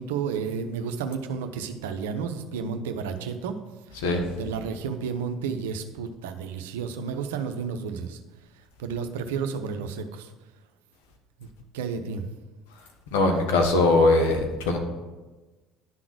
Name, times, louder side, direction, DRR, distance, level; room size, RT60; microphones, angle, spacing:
voice 1, 0.0-3.6 3.9-4.0 4.4-8.2 8.8-10.3 11.4-11.5 11.7-12.2, right 6 dB, 80° right, 7 dB, 0.7 m, -31 dB
voice 2, 3.9-4.4 13.1-14.8, left 2 dB, 80° left, 3 dB, 1.3 m, -21 dB
11.0 x 3.9 x 6.2 m, 1.2 s
hypercardioid pair, 65°, 0 cm